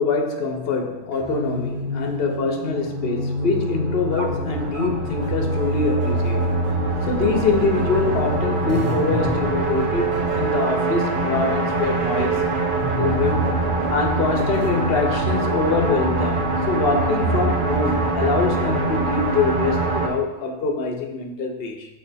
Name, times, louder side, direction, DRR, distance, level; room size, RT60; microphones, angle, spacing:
voice 1, 0.0-6.5 7.1-12.4 12.9-13.6 13.9-21.9, left 4 dB, 65° left, 4 dB, 0.9 m, -24 dB
sound 1, 1.1-20.1, right 2 dB, 55° right, 0.8 m, -24 dB
sound 2, 6.9-11.2 11.6-11.7 12.8-14.4, right 3 dB, 20° right, 0.3 m, -34 dB
7.1 x 3.3 x 4.0 m, 1.1 s
omnidirectional pair, 1.1 m